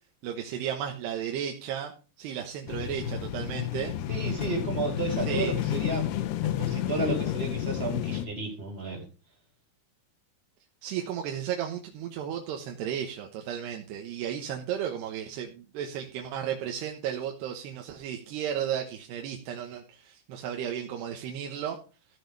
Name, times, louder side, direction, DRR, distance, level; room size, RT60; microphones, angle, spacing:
voice 1, 0.2-1.9 2.2-3.9 5.3-5.5 10.8-21.8, right 9 dB, 90° right, 2 dB, 3.4 m, -34 dB
sound 1, 2.7-8.3, left 11 dB, 85° left, 3.1 m, -31 dB
voice 2, 4.1-6.1 6.4-9.0, right 2 dB, 15° right, 0 dB, 3.7 m, -32 dB
15.0 x 6.7 x 4.7 m, 0.33 s
omnidirectional pair, 4.6 m